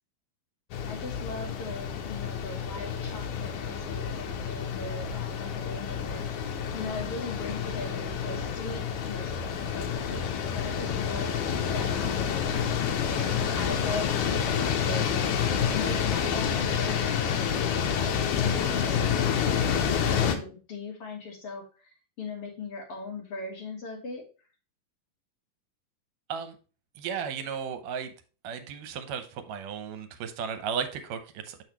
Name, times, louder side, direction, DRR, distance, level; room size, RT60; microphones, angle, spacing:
sound 1, 0.7-20.4, left 7 dB, 75° left, 2.5 m, -29 dB
voice 1, 0.9-9.4 9.7-11.3 11.7-12.8 13.1-17.6 17.9-24.2, left 3 dB, 55° left, 1 dB, 1.9 m, -39 dB
voice 2, 27.0-28.1 28.4-31.6, right 7 dB, 80° right, 9 dB, 2.4 m, -35 dB
7.1 x 6.2 x 2.9 m, 0.35 s
omnidirectional pair, 3.8 m